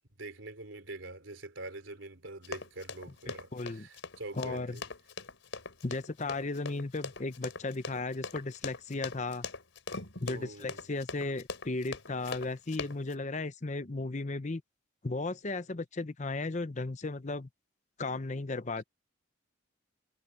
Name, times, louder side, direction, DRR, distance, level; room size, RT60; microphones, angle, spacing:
voice 1, 0.2-4.8 10.3-10.8, right 2 dB, 80° right, 3.3 m, -44 dB
Run, 2.4-13.1, left 4 dB, 80° left, 4.0 m, -41 dB
voice 2, 3.3-3.9 4.3-4.8 5.8-9.5 10.2-14.6 15.0-17.5 18.0-18.8, left 3 dB, 40° left, 0.7 m, -35 dB
head